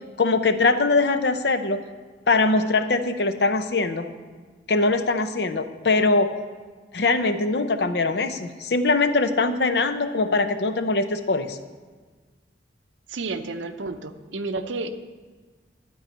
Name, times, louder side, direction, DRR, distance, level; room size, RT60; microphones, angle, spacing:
voice 1, 0.2-1.8 2.3-4.1 4.7-6.3 6.9-11.6, left 3 dB, 60° left, 9 dB, 0.6 m, -22 dB
voice 2, 13.1-14.9, right 3 dB, 80° right, 9 dB, 0.7 m, -31 dB
11.5 x 4.7 x 8.1 m, 1.4 s
head